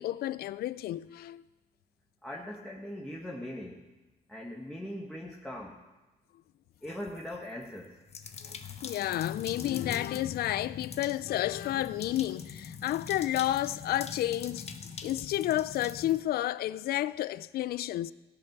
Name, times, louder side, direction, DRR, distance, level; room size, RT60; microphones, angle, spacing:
voice 1, 0.0-1.4 8.4-8.6 8.8-14.7 15.0-18.1, left 14 dB, 65° left, 0.4 m, -31 dB
voice 2, 2.2-3.8 4.3-5.8 6.8-8.0, left 1 dB, 5° left, 1.3 m, -40 dB
sound 1, 6.8-7.4 8.1-16.2, left 6 dB, 40° left, 1.0 m, -42 dB
17.0 x 8.6 x 6.0 m
cardioid pair, 125°, 17 cm